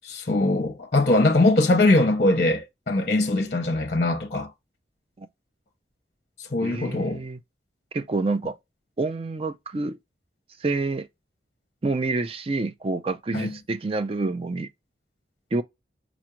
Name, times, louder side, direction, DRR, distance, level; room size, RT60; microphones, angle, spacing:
voice 1, 0.0-4.5 6.5-7.2 13.3-13.5, left 2 dB, 40° left, 0.6 m, -21 dB
voice 2, 6.6-7.4 7.9-8.6 9.0-10.0 10.6-11.1 11.8-14.7 15.5-15.6, right 3 dB, 30° right, 0.4 m, -27 dB
5.1 x 2.3 x 2.9 m
head